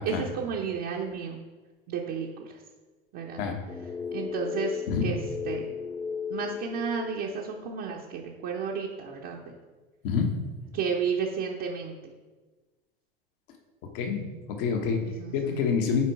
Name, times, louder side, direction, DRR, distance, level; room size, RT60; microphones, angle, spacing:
voice 1, 0.0-1.4 1.9-2.6 3.1-3.4 4.1-5.2 5.4-5.7 6.3-9.5 10.7-12.0 15.0-15.7, right 6 dB, 55° right, -2 dB, 1.0 m, -32 dB
sound 1, 3.7-7.9, left 6 dB, 10° left, 0.3 m, -36 dB
voice 2, 13.9-14.3 14.6-15.0 15.3-16.1, left 6 dB, 65° left, 4 dB, 1.3 m, -26 dB
7.4 x 4.5 x 4.7 m, 1.3 s
hypercardioid pair, 90°, 29 cm